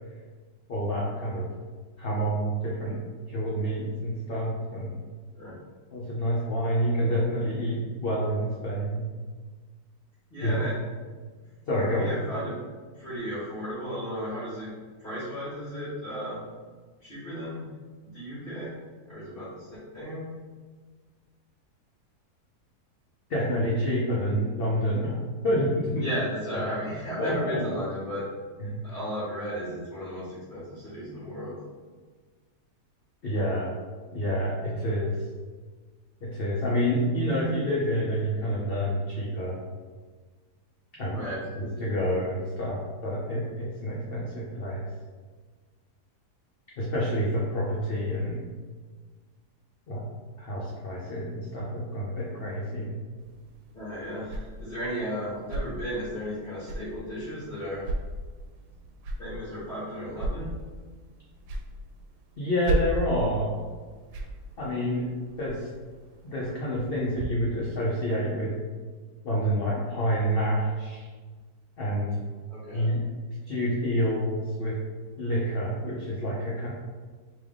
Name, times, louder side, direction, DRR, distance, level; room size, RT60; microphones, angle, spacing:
voice 1, 0.7-1.5 2.0-3.0 3.3-4.9 5.9-9.0 10.4-10.5 11.7-12.1 23.3-25.2 25.4-26.1 27.2-27.3 28.6-28.8 33.2-33.7 34.1-35.1 36.2-39.6 41.0-41.2 41.6-44.9 46.8-48.4 49.9-50.0 50.4-53.0 62.4-63.5 64.6-65.0 65.4-65.7 66.2-68.5 69.2-71.1 71.8-72.1 72.7-73.0 73.5-74.7 75.2-76.7, equal, 55° left, -6 dB, 0.7 m, -28 dB
voice 2, 10.3-10.8 11.8-12.6 12.9-14.7 15.0-16.4 17.0-17.7 18.0-18.7 19.1-20.3 25.9-28.2 28.8-31.6 41.1-41.4 53.7-57.9 59.2-60.5 72.5-72.9, equal, 35° left, -12 dB, 1.3 m, -34 dB
sound 1, 53.2-67.3, right 2 dB, 80° right, 1.1 m, -37 dB
3.3 x 3.0 x 3.5 m, 1.4 s
omnidirectional pair, 1.7 m